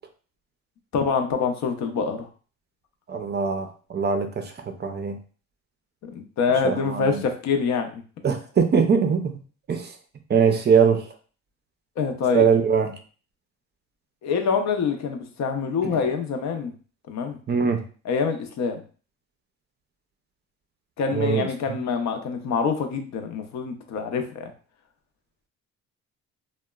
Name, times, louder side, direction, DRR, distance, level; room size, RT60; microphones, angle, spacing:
voice 1, 0.9-2.3 6.1-8.0 12.0-12.5 14.2-16.7 17.1-17.4 18.0-18.8 21.0-24.5, left 5 dB, 65° left, 5 dB, 0.5 m, -25 dB
voice 2, 3.1-5.2 6.6-7.2 8.2-9.4 9.7-9.9 10.3-11.0 12.3-12.9 17.5-17.8 21.1-21.5, right 6 dB, 35° right, 6 dB, 0.4 m, -22 dB
2.8 x 2.1 x 2.3 m, 0.39 s
cardioid pair, 90°, 30 cm